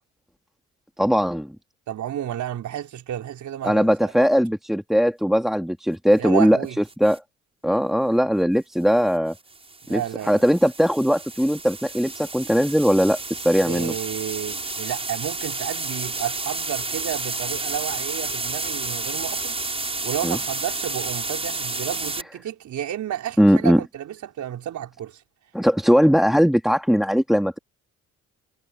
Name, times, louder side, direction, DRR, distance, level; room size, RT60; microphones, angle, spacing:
voice 1, 1.0-1.6 3.6-7.2 7.6-9.3 9.9-13.9 20.2-20.4 23.4-23.8 25.5-27.6, equal, ahead, 2.5 m, -20 dB
voice 2, 1.9-4.3 6.2-6.8 9.8-10.4 13.6-19.6 20.0-25.2, right 11 dB, 70° right, 4.6 m, -31 dB
sound 1, 6.9-7.2 9.3-22.2, right 3 dB, 20° right, 6.5 m, -31 dB
cardioid pair, 90°, 30 cm